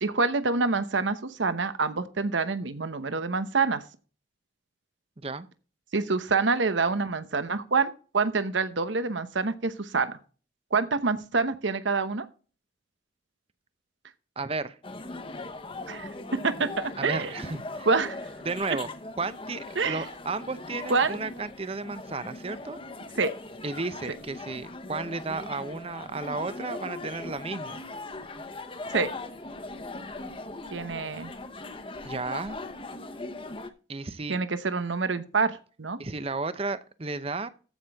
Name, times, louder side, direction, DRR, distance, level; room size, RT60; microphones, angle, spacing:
voice 1, 0.0-3.8 5.9-10.2 10.7-12.3 15.9-16.1 16.4-17.3 17.9-18.2 19.8-20.0 20.9-21.2 23.2-23.3 28.9-29.1 30.7-31.3 34.3-36.0, right 4 dB, 85° right, 1.0 m, -26 dB
voice 2, 5.2-5.5 14.4-14.8 17.0-17.9 18.4-18.9 19.2-22.8 23.6-27.8 32.0-32.7 33.9-34.4 36.0-37.5, right 3 dB, 30° right, 0.7 m, -33 dB
sound 1, 14.8-33.7, left 2 dB, 30° left, 0.9 m, -40 dB
14.5 x 6.1 x 3.5 m
head